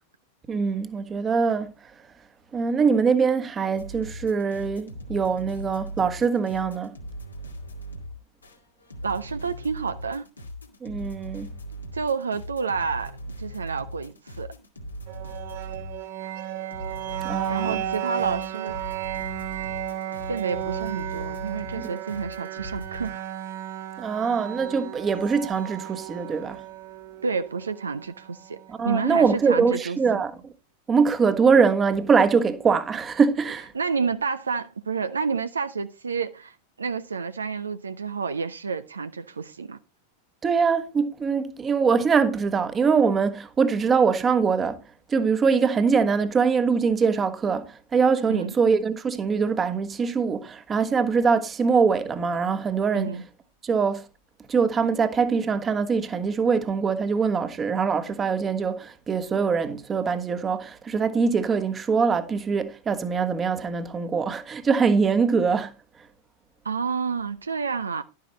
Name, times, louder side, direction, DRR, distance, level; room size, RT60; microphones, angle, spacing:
voice 1, 0.5-1.9 2.5-7.0 10.8-11.5 17.2-17.8 24.0-26.6 28.7-30.5 30.9-33.7 40.4-44.8 45.1-53.2 53.6-54.1 54.5-65.7, right 5 dB, 20° right, 1.2 m, -23 dB
sound 1, 3.7-16.0 16.2-23.1, right 1 dB, 80° left, 2.1 m, -39 dB
voice 2, 9.0-10.2 11.9-14.5 17.5-18.8 20.3-23.2 27.2-28.6 28.8-30.2 33.7-39.8 48.3-48.6 52.9-53.2 66.6-68.0, right 5 dB, 75° right, 0.6 m, -29 dB
sound 2, 15.1-29.0, right 12 dB, 55° right, 1.3 m, -34 dB
11.5 x 9.5 x 3.1 m
figure-of-eight pair, 90°, 0 cm